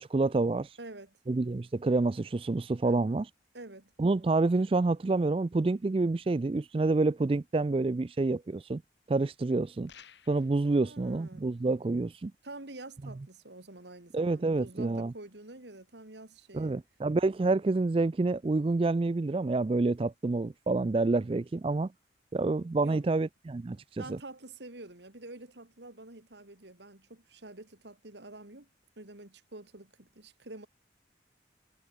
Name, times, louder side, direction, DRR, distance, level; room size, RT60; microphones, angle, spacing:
voice 1, 0.0-0.8 1.3-3.3 4.0-8.8 9.1-9.9 10.3-12.3 14.1-15.1 16.5-21.9 22.3-24.2, right 3 dB, 30° right, 0.3 m, -28 dB
voice 2, 0.8-1.2 2.8-3.2 3.5-3.9 10.7-11.5 12.4-16.8 22.8-23.0 24.0-28.7 29.0-30.7, right 2 dB, 75° right, 2.7 m, -47 dB
sound 1, 9.9-10.6, left 8 dB, 75° left, 2.0 m, -54 dB
head